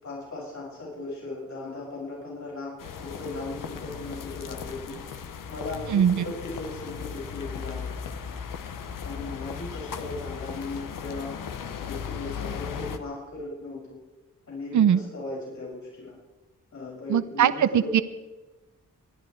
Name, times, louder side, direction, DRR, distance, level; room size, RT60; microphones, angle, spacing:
voice 1, 0.0-5.0 5.5-7.9 9.0-11.4 11.8-14.0 14.5-16.1 16.7-17.9, left 2 dB, 60° left, -5 dB, 7.2 m, -37 dB
sound 1, 2.8-13.0, left 7 dB, 85° left, 1.1 m, -37 dB
voice 2, 5.9-6.2 14.7-15.0 17.1-18.0, right 9 dB, 65° right, 14 dB, 0.7 m, -21 dB
24.5 x 10.5 x 4.8 m, 1.1 s
cardioid pair, 50°, 32 cm